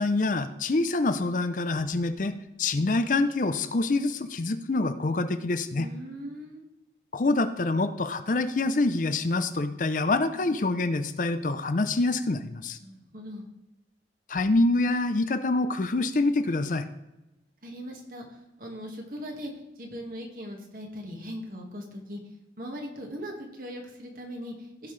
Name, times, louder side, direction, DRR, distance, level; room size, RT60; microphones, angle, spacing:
voice 1, 0.0-5.9 7.1-12.8 14.3-16.9, left 2 dB, 45° left, 10 dB, 0.5 m, -26 dB
voice 2, 5.7-6.6 12.8-13.4 17.6-22.2 22.6-24.9, equal, 50° right, 1 dB, 1.8 m, -39 dB
15.5 x 5.6 x 3.3 m, 0.95 s
head